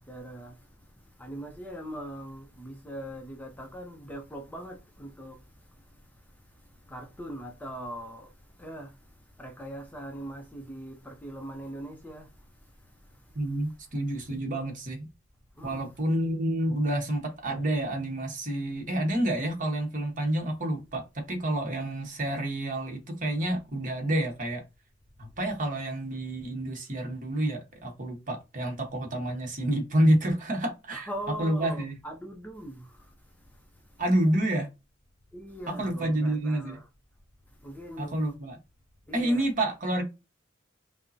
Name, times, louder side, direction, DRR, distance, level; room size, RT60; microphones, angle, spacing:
voice 1, 0.1-0.6 1.2-5.4 6.9-8.3 8.6-8.9 9.4-12.3 15.6-15.9 30.9-33.0 35.3-36.9 37.6-38.2 39.1-39.5, right 1 dB, 10° left, 0.5 m, -41 dB
voice 2, 13.3-15.1 15.6-24.6 25.2-31.1 31.4-32.0 34.0-34.7 35.7-36.8 38.0-38.6 39.1-40.0, right 1 dB, 40° right, 1.0 m, -28 dB
5.2 x 2.0 x 2.6 m
head